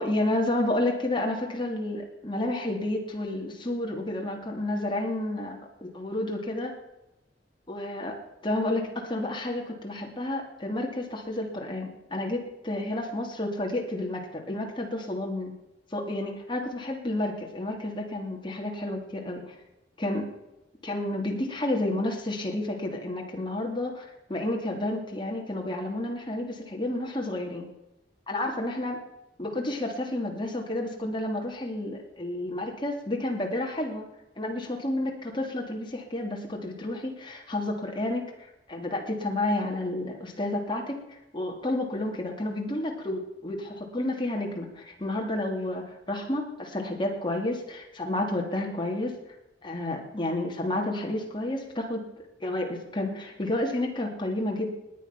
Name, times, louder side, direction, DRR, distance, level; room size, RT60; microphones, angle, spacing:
voice 1, 0.0-6.7 7.7-8.2 8.4-15.5 15.9-19.5 20.0-20.3 20.8-27.7 28.3-29.0 29.4-34.0 34.4-38.2 38.7-49.1 49.6-52.0 52.4-54.8, left 1 dB, 30° left, 1 dB, 2.9 m, -30 dB
20.0 x 9.3 x 6.0 m, 0.92 s
head